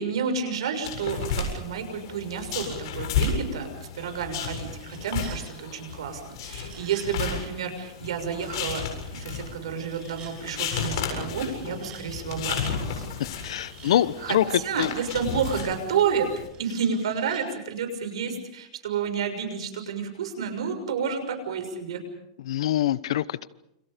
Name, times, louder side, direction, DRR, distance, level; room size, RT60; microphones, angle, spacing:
voice 1, 0.0-13.0 13.8-16.3 16.6-22.0, right 6 dB, 90° right, 7 dB, 6.5 m, -30 dB
sound 1, 0.8-16.5, left 6 dB, 60° left, 7.5 m, -33 dB
sound 2, 4.6-5.4 6.4-7.1 9.7-10.3 11.3-12.1 13.0-14.0 14.8-15.7 16.5-17.4, right 7 dB, 25° right, 5.3 m, -49 dB
voice 2, 13.4-14.4 14.8-14.9 22.4-23.5, left 12 dB, 80° left, 17 dB, 1.1 m, -24 dB
29.5 x 27.5 x 5.2 m, 0.80 s
supercardioid pair, 160°, 3 cm